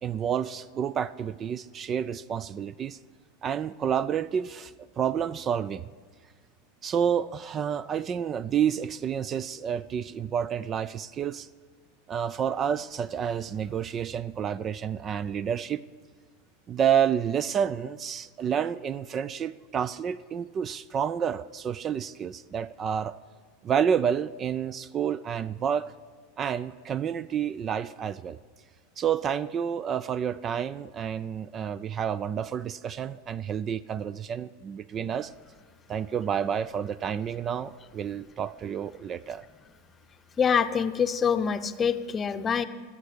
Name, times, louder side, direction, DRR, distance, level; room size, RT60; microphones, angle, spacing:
voice 1, 0.0-3.0 3.4-5.9 6.8-11.5 12.1-15.8 16.7-23.2 23.6-25.9 26.4-28.4 29.0-35.3 35.9-39.4, right 8 dB, 35° right, 19 dB, 0.4 m, -29 dB
voice 2, 40.4-42.7, left 7 dB, 25° left, 10 dB, 0.7 m, -25 dB
25.0 x 8.4 x 5.1 m, 1.5 s
hypercardioid pair, 85°, 0 cm